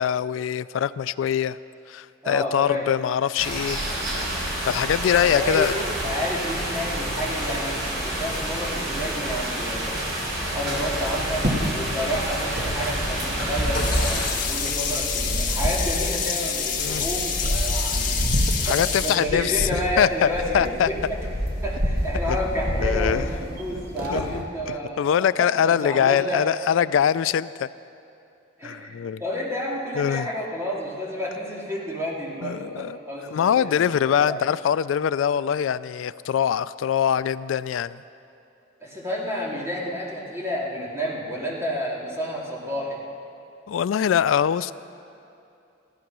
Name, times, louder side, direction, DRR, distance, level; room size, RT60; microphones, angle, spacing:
voice 1, 0.0-1.6 1.9-3.8 4.6-5.7 12.0-12.2 16.8-17.1 18.6-20.9 22.3-22.4 22.8-23.2 24.1-27.7 28.6-29.2 30.0-30.3 32.4-33.0 33.3-38.0 43.7-44.7, left 8 dB, 85° left, 16 dB, 0.3 m, -23 dB
voice 2, 2.2-2.9 5.2-7.8 8.0-10.0 10.5-18.2 18.7-21.2 21.6-26.5 28.6-34.4 38.8-43.0, equal, 15° right, -4 dB, 2.6 m, -30 dB
sound 1, 3.4-14.3, right 1 dB, 75° right, 4.1 m, -29 dB
sound 2, 10.4-24.4, equal, 50° right, 2.1 m, -29 dB
Sink (filling or washing), 13.7-19.1, left 6 dB, 45° left, 1.9 m, -27 dB
15.0 x 13.0 x 6.1 m, 2.6 s
head